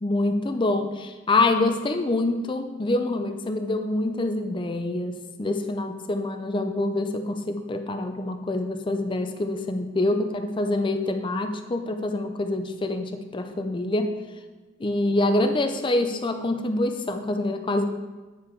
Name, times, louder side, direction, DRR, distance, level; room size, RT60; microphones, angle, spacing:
voice 1, 0.0-14.2 14.8-17.8, left 2 dB, 25° left, 6 dB, 0.5 m, -26 dB
9.4 x 4.8 x 4.5 m, 1.2 s
head